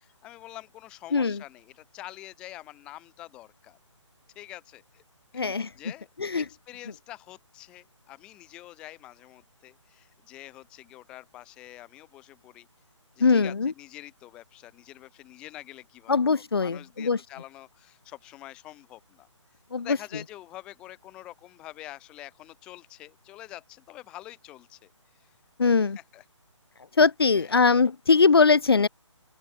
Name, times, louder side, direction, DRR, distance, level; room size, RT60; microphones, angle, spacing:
voice 1, 0.0-3.8 4.3-5.0 5.3-6.1 6.3-12.7 13.2-19.3 19.8-24.9 25.2-25.4 25.7-26.2 27.3-27.7, left 15 dB, 5° left, 1.6 m, -46 dB
voice 2, 5.3-5.7 6.2-6.4 13.2-13.7 16.1-17.2 19.7-20.0 25.6-26.0 27.0-28.9, left 4 dB, 50° left, 1.1 m, -21 dB
open air
hypercardioid pair, 180°, 16 cm